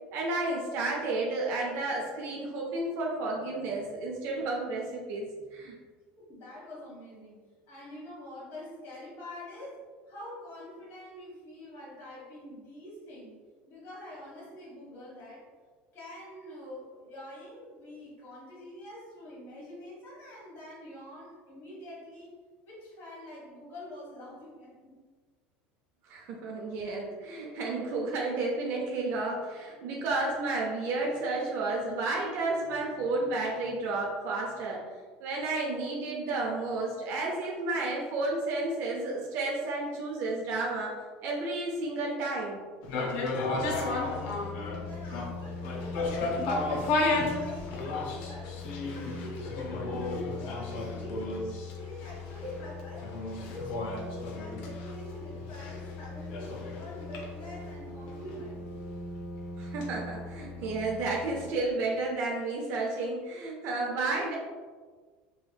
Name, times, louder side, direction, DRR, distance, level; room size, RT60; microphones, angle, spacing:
voice 1, 0.1-5.8 26.1-34.8 35.2-40.9 41.2-42.6 59.6-64.4, right 2 dB, 60° right, -2 dB, 0.5 m, -32 dB
voice 2, 6.2-7.4 7.7-9.8 10.1-13.4 13.7-15.5 15.9-22.3 22.6-24.9 43.3-44.6 44.9-47.1 47.3-51.4 51.7-53.1 53.4-58.7, left 1 dB, 55° left, -6 dB, 1.5 m, -45 dB
sound 1, 42.8-61.0 61.3-61.4, left 2 dB, 70° left, 0.6 m, -34 dB
sound 2, 43.6-61.5, left 3 dB, 30° left, 0.5 m, -41 dB
3.2 x 3.1 x 2.3 m, 1.5 s
supercardioid pair, 105°, 5 cm